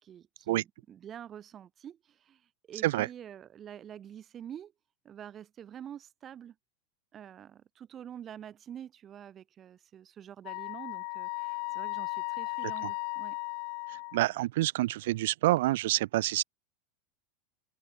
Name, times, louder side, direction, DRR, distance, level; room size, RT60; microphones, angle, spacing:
voice 1, 0.0-2.4 2.7-4.7 5.0-6.5 7.1-13.4, right 9 dB, 25° right, 4.5 m, -47 dB
Wind instrument woodwind instrument, 10.4-14.3, left 40 dB or more, 50° left, 0.8 m, -36 dB
voice 2, 13.9-16.4, right 16 dB, 75° right, 0.4 m, -28 dB
supercardioid pair, 160°, 0 cm